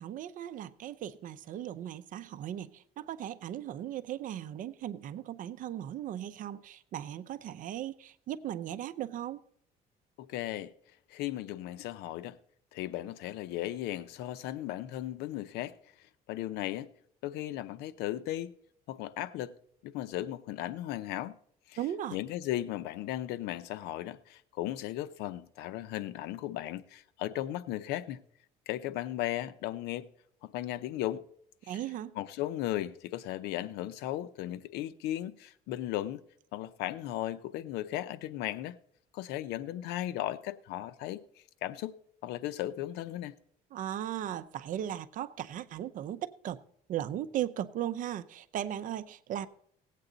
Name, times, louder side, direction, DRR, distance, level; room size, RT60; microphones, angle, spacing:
voice 1, 0.0-9.4 21.8-22.2 31.7-32.1 43.7-46.6 46.9-49.5, right 11 dB, 55° right, 0.7 m, -37 dB
voice 2, 10.2-10.7 11.1-12.4 12.7-15.8 16.3-16.9 17.2-18.5 18.9-19.5 19.8-21.3 21.7-21.8 22.1-28.2 28.7-30.1 30.4-31.2 31.6-31.8 32.1-36.2 36.5-38.8 39.1-41.2 41.6-42.0 42.2-43.3, left 13 dB, 85° left, 0.7 m, -36 dB
17.5 x 8.4 x 3.9 m
cardioid pair, 130°, 17 cm